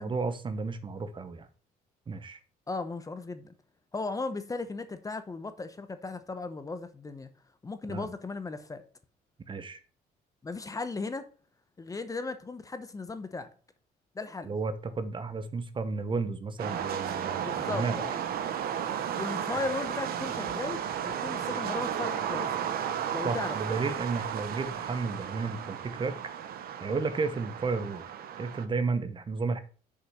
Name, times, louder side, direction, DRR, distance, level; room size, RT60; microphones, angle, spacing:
voice 1, 0.0-1.5 2.1-2.4 7.9-8.1 9.5-9.8 14.4-18.0 23.2-26.2 26.8-28.0 28.3-29.6, right 4 dB, 30° right, 0.8 m, -32 dB
voice 2, 2.7-3.5 3.9-7.3 7.6-8.8 10.4-11.3 11.8-13.5 14.1-14.5 17.4-18.2 19.2-22.7 23.1-23.6, left 3 dB, 20° left, 0.8 m, -36 dB
sound 1, 16.6-28.7, right 9 dB, 65° right, 1.0 m, -34 dB
6.7 x 5.4 x 5.5 m
cardioid pair, 110°, 17 cm